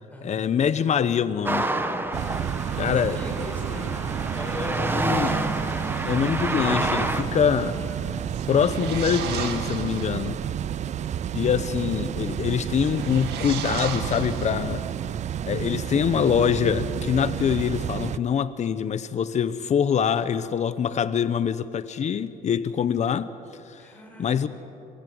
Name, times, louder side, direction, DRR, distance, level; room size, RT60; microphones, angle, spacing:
voice 1, 0.2-1.7 2.8-3.5 4.9-5.3 6.0-7.8 8.5-10.4 11.3-14.8 15.5-23.3 23.7-23.8 24.2-24.5, left 8 dB, 45° left, 14 dB, 0.9 m, -24 dB
Cars Passing on Road, 1.4-7.2, right 2 dB, 10° right, 1.4 m, -28 dB
sound 1, 2.1-18.2, right 9 dB, 45° right, 0.5 m, -31 dB
voice 2, 2.9-5.4 7.2-8.3 23.8-24.5, left 1 dB, 10° left, -2 dB, 7.4 m, -38 dB
sound 2, 8.3-10.3 12.7-15.0, right 7 dB, 80° right, 2.2 m, -35 dB
27.5 x 15.0 x 7.8 m, 2.7 s
cardioid pair, 110°, 17 cm